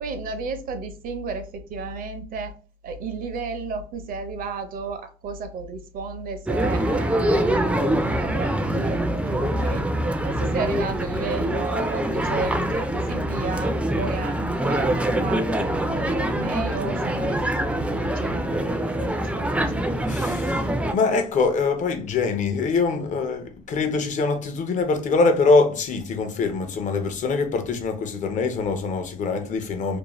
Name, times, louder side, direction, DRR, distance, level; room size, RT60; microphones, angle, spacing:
voice 1, 0.0-2.6 2.8-7.8 8.1-20.1, right 4 dB, 55° right, 0.6 m, -33 dB
sound 1, 6.5-20.9, right 1 dB, 5° right, 0.4 m, -24 dB
voice 2, 20.1-30.0, left 4 dB, 50° left, 0.6 m, -23 dB
2.6 x 2.1 x 3.0 m
cardioid pair, 110°, 17 cm